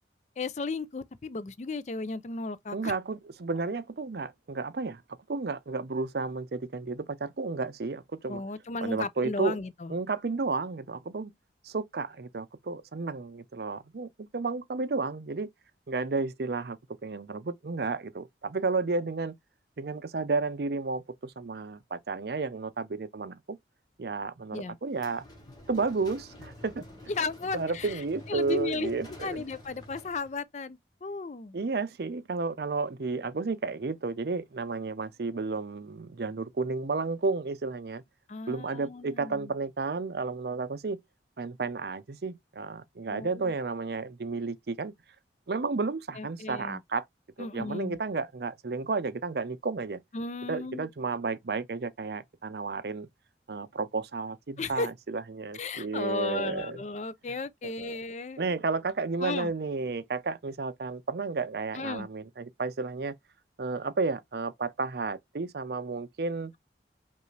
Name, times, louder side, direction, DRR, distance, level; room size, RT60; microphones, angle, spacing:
voice 1, 0.4-2.9 8.3-9.9 24.5-24.8 27.1-28.0 28.3-28.9 29.2-31.6 38.3-39.5 43.1-43.5 46.2-46.8 47.4-48.0 50.1-50.9 54.6-54.9 55.5-58.5 59.2-59.5 61.7-62.1, left 3 dB, 40° left, 0.4 m, -35 dB
voice 2, 2.7-5.0 5.3-8.4 8.8-9.6 9.9-11.3 11.6-15.5 15.9-19.4 19.8-23.6 24.0-25.2 25.7-26.8 27.5-29.4 31.5-38.0 38.5-41.0 41.4-44.9 45.5-47.0 47.4-50.0 50.5-53.1 53.5-56.8 57.6-58.0 58.4-63.1 63.6-66.5, right 4 dB, 60° right, 0.5 m, -32 dB
sound 1, 24.9-30.4, left 1 dB, 20° left, 1.2 m, -49 dB
5.3 x 2.5 x 3.2 m
head